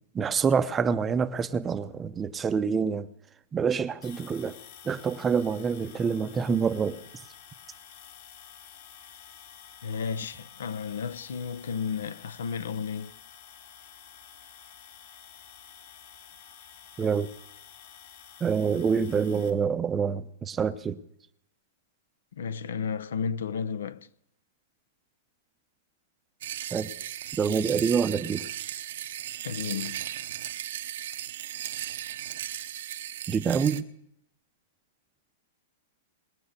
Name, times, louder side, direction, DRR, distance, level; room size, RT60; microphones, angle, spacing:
voice 1, 0.1-3.1 3.5-4.6 4.8-7.0 17.0-17.3 18.4-21.0 26.7-26.9 27.4-28.5 33.3-33.8, right 6 dB, 15° right, 0.7 m, -26 dB
sound 1, 4.0-19.5, left 8 dB, 55° left, 3.0 m, -50 dB
voice 2, 9.8-13.2 22.3-24.1 29.4-30.1, left 6 dB, 85° left, 0.9 m, -33 dB
sound 2, 26.4-33.8, right 12 dB, 70° right, 0.9 m, -36 dB
20.5 x 9.2 x 6.7 m
hypercardioid pair, 150°, 0 cm